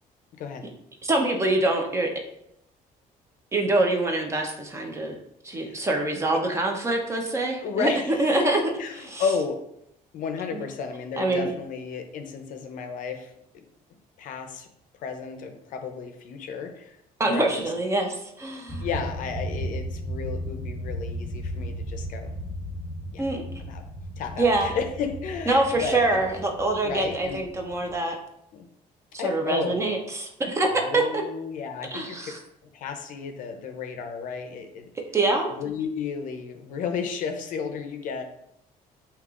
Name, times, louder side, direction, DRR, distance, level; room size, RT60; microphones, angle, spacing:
voice 1, 1.0-2.1 3.5-5.2 5.4-7.9 8.2-9.2 10.5-10.6 11.2-11.5 17.2-18.8 23.2-23.4 24.4-24.7 25.5-28.2 29.2-30.7 30.9-31.2 31.9-32.4 35.1-35.5, right 2 dB, 20° right, 2 dB, 0.5 m, -25 dB
voice 2, 5.5-5.9 6.3-6.4 7.6-9.6 10.1-13.6 14.2-14.7 15.0-17.0 17.3-17.5 18.8-22.3 23.1-23.3 23.6-23.8 24.2-26.2 26.8-27.4 28.5-28.7 29.2-29.9 30.7-32.3 32.7-34.9 35.5-38.2, left 5 dB, 65° left, 6 dB, 0.5 m, -33 dB
sound 1, 18.7-28.0, equal, 20° left, 0.7 m, -35 dB
5.1 x 2.8 x 2.4 m, 0.76 s
cardioid pair, 160°, 15 cm